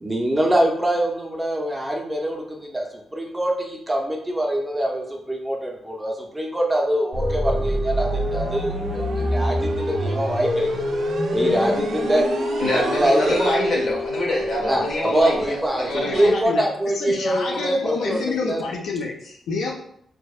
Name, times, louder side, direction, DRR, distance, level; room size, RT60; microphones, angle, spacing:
voice 1, 0.0-2.9 3.1-11.0 11.3-12.2 12.7-13.4 14.6-18.6, right 1 dB, 10° right, 0.4 m, -24 dB
sound 1, 7.1-13.5, right 1 dB, 90° right, 0.4 m, -27 dB
sound 2, 7.2-16.5, left 1 dB, 35° left, 0.6 m, -28 dB
voice 2, 12.6-16.3 18.0-18.1, left 1 dB, 60° left, 0.8 m, -25 dB
voice 3, 15.9-16.7 16.9-19.7, left 4 dB, 85° left, 0.3 m, -28 dB
2.6 x 2.1 x 2.3 m
cardioid pair, 130°, 0 cm